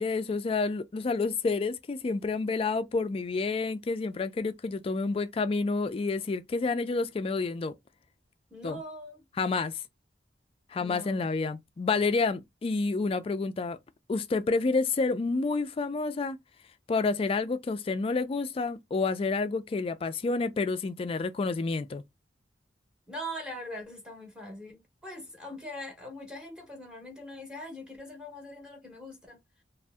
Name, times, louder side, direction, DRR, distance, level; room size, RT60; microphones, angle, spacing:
voice 1, 0.0-7.8 8.6-8.8 9.4-9.8 10.7-13.8 14.1-16.4 16.9-22.0, left 3 dB, 30° left, 0.3 m, -29 dB
voice 2, 8.5-9.2 10.8-11.3 23.1-29.4, equal, 5° right, 0.7 m, -42 dB
2.6 x 2.0 x 3.3 m
head